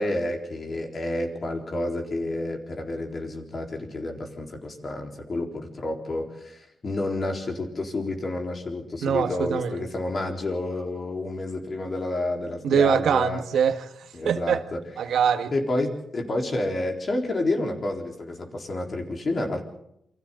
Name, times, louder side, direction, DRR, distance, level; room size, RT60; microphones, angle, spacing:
voice 1, 0.0-13.4 14.1-14.8 15.5-19.6, left 2 dB, 35° left, 4.0 m, -29 dB
voice 2, 9.0-9.9 12.6-14.6 15.0-15.5, right 7 dB, 85° right, 1.6 m, -23 dB
28.0 x 25.0 x 3.9 m
wide cardioid pair, 135°, 0 cm